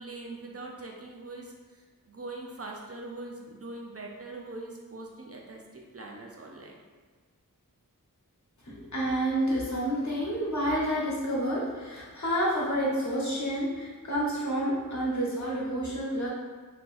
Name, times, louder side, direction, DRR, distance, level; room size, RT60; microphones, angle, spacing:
voice 1, 0.0-6.8, right 2 dB, 45° right, -1 dB, 0.5 m, -42 dB
voice 2, 8.6-16.3, equal, 55° left, -6 dB, 1.1 m, -29 dB
3.5 x 2.8 x 2.5 m, 1.4 s
wide cardioid pair, 50°, 35 cm